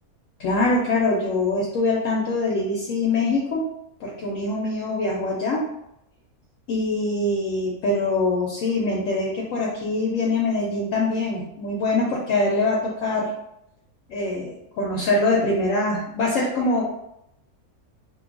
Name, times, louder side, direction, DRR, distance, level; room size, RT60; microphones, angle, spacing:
voice 1, 0.4-3.6 4.0-5.6 6.7-13.3 14.1-16.8, left 2 dB, 70° left, -3 dB, 0.9 m, -23 dB
2.7 x 2.2 x 3.6 m, 0.81 s
omnidirectional pair, 1.5 m